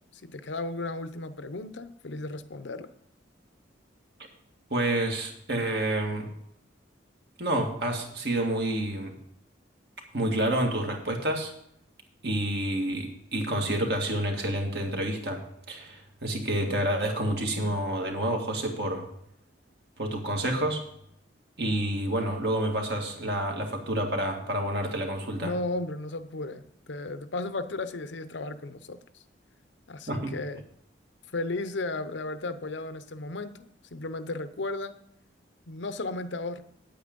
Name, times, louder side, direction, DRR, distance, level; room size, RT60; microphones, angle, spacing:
voice 1, 0.1-2.9 25.4-29.2 29.9-30.6 31.3-33.6 33.9-35.0 35.7-36.6, left 2 dB, 75° left, 11 dB, 0.7 m, -34 dB
voice 2, 4.7-6.3 7.4-9.2 10.1-11.5 12.2-15.4 15.7-19.0 20.0-20.8 21.6-25.5 30.1-30.3, right 1 dB, 55° right, 2 dB, 1.9 m, -28 dB
9.0 x 8.8 x 5.3 m, 0.71 s
head